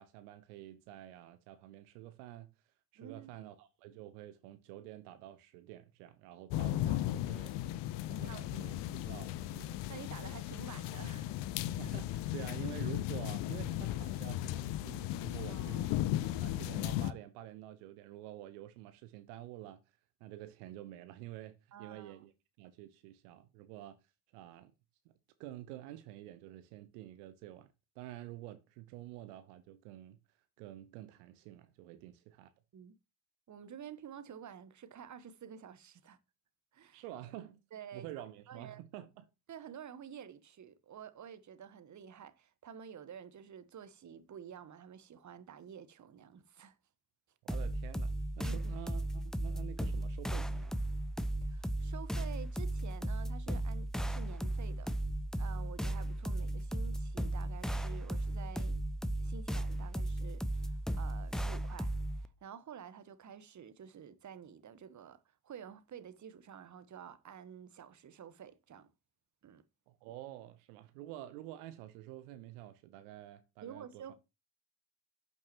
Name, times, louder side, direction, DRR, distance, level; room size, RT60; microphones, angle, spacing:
voice 1, 0.0-7.7 8.1-9.8 11.8-19.8 20.2-22.3 22.6-24.0 24.3-24.7 25.0-25.1 25.4-30.2 30.6-32.5 36.9-37.6 37.9-39.3 47.4-50.8 69.9-74.0, right 14 dB, 70° right, 1.0 m, -49 dB
voice 2, 3.0-3.5 8.2-8.4 9.9-11.3 15.5-16.5 21.7-22.2 32.7-33.0 33.5-36.2 36.7-37.0 37.7-38.8 39.5-46.8 48.4-48.6 51.4-54.9 55.4-58.8 59.2-68.9 69.4-69.6 73.6-74.2, right 8 dB, 35° right, 1.2 m, -50 dB
sound 1, 6.5-17.1, left 13 dB, 60° left, 0.8 m, -36 dB
sound 2, 47.5-62.3, right 1 dB, ahead, 0.8 m, -36 dB
11.5 x 8.8 x 3.0 m
figure-of-eight pair, 45°, 48 cm